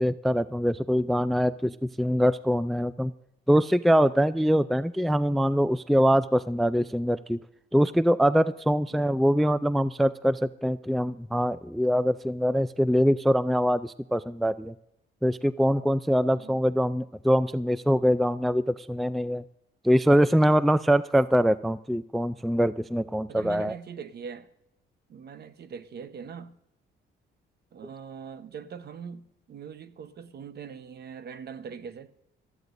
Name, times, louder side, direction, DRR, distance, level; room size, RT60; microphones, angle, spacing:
voice 1, 0.0-3.1 3.5-7.4 7.7-14.7 15.2-19.4 19.8-23.7, equal, ahead, 0.3 m, -23 dB
voice 2, 16.2-16.7 23.3-24.5 25.1-26.6 27.7-32.1, right 6 dB, 55° right, 0.9 m, -42 dB
19.0 x 13.5 x 2.6 m
cardioid pair, 90°, 20 cm